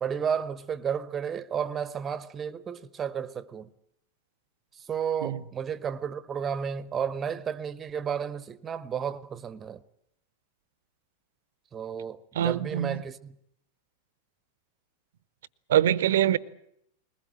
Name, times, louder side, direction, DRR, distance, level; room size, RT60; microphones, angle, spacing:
voice 1, 0.0-3.7 4.9-9.8 11.7-13.3, right 7 dB, 20° right, 1.0 m, -32 dB
voice 2, 12.3-13.0 15.7-16.4, right 11 dB, 60° right, 0.9 m, -24 dB
21.5 x 20.0 x 8.8 m
figure-of-eight pair, 90°, 0 cm